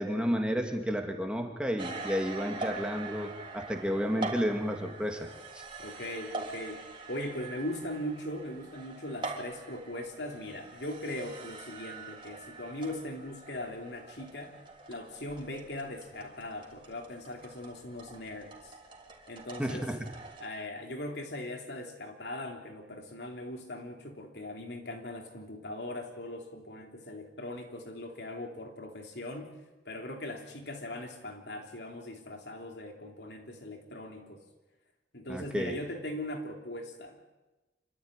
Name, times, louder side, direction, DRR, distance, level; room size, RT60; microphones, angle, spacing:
voice 1, 0.0-5.3 5.5-5.6 19.6-20.0 35.3-35.7, equal, 5° right, 3 dB, 2.4 m, -31 dB
sound 1, 1.8-20.5, right 3 dB, 30° right, 3.6 m, -44 dB
voice 2, 5.8-6.8 7.1-14.6 14.9-18.7 19.3-19.9 20.4-29.5 29.8-34.4 35.1-37.2, left 1 dB, 70° left, 3 dB, 3.6 m, -40 dB
26.5 x 14.0 x 10.0 m, 1.1 s
head